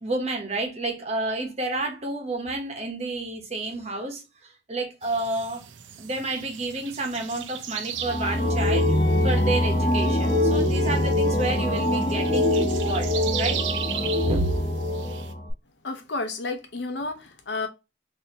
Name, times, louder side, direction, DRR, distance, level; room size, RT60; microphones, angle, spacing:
voice 1, 0.0-5.6 6.0-13.6 14.3-14.5, right 2 dB, 35° right, 1.0 m, -30 dB
sound 1, 5.0-15.3, right 10 dB, 85° right, 0.5 m, -37 dB
sound 2, 8.0-15.5, left 1 dB, 40° left, 0.9 m, -23 dB
voice 2, 15.8-17.7, left 3 dB, 75° left, 0.8 m, -31 dB
4.1 x 2.7 x 2.8 m
head